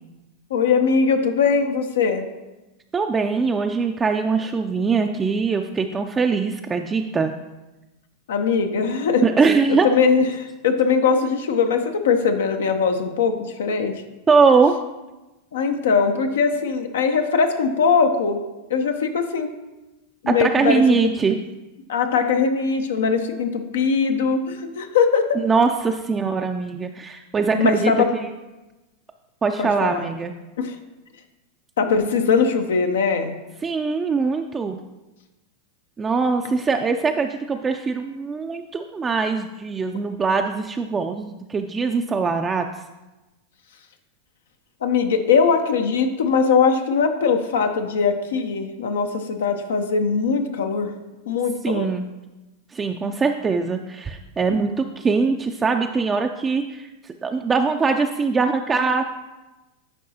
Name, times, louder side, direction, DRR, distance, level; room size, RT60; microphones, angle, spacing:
voice 1, 0.5-2.3 8.3-9.2 9.7-13.9 15.5-18.4 18.7-19.5 20.2-21.1 21.9-25.4 27.5-28.1 29.6-30.1 30.6-30.8 31.8-33.3 44.8-50.9 51.3-51.9, left 5 dB, 85° left, 6 dB, 0.6 m, -21 dB
voice 2, 2.9-7.3 9.2-9.9 14.3-14.7 20.3-21.4 25.4-27.9 28.2-28.3 29.4-30.3 33.6-34.8 36.0-42.7 51.6-52.1 52.7-56.9 57.2-59.2, right 4 dB, 20° right, 4 dB, 0.3 m, -22 dB
10.0 x 4.6 x 2.8 m, 1.1 s
hypercardioid pair, 115°, 0 cm